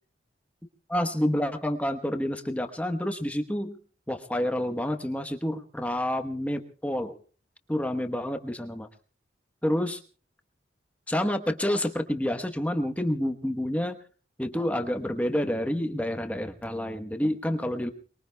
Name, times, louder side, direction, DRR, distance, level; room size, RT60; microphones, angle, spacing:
voice 1, 0.9-3.8 4.1-7.2 7.7-8.9 9.6-10.0 11.1-14.0 14.4-17.9, left 1 dB, 10° left, 6 dB, 1.1 m, -28 dB
28.5 x 22.0 x 2.3 m, 0.39 s
head